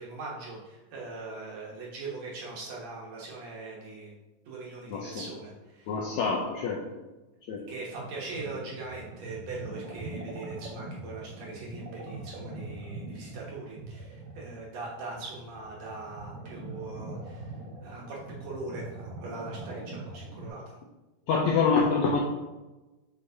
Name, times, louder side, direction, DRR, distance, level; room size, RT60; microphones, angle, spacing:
voice 1, 0.0-4.1 4.5-6.0 7.7-17.5 17.8-20.7, right 3 dB, 65° right, -4 dB, 2.0 m, -41 dB
voice 2, 4.9-5.2 5.9-6.8 7.5-7.6 21.3-22.2, left 5 dB, 80° left, -1 dB, 1.6 m, -26 dB
sound 1, 7.9-20.5, right 2 dB, 85° right, 2.9 m, -42 dB
6.4 x 5.7 x 2.7 m, 1.1 s
omnidirectional pair, 3.9 m